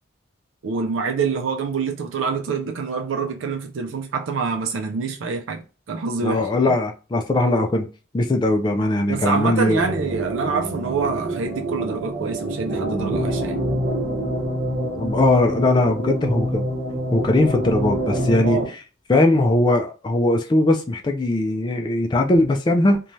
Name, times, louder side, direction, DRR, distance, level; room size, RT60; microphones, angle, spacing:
voice 1, 0.6-5.6 5.9-6.7 9.1-13.6 18.4-18.7, right 5 dB, 80° right, 0.4 m, -26 dB
voice 2, 6.2-7.9 8.1-9.8 14.9-16.6 17.1-18.6 19.1-23.0, left 2 dB, 25° left, 0.3 m, -20 dB
Choir Tape Chop (Full), 9.7-18.7, right 1 dB, 50° right, 0.9 m, -26 dB
3.0 x 2.2 x 2.6 m
head